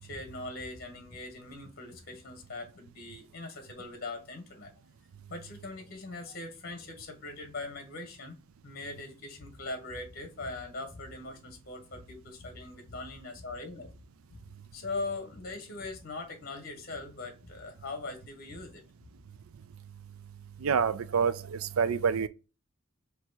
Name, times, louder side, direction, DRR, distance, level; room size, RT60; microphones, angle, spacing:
voice 1, 0.0-4.7 5.3-8.4 8.6-13.9 14.3-14.4 14.7-18.8, left 2 dB, 45° left, 1.0 m, -41 dB
voice 2, 20.6-22.3, right 6 dB, 80° right, 0.5 m, -27 dB
4.5 x 2.8 x 3.9 m
head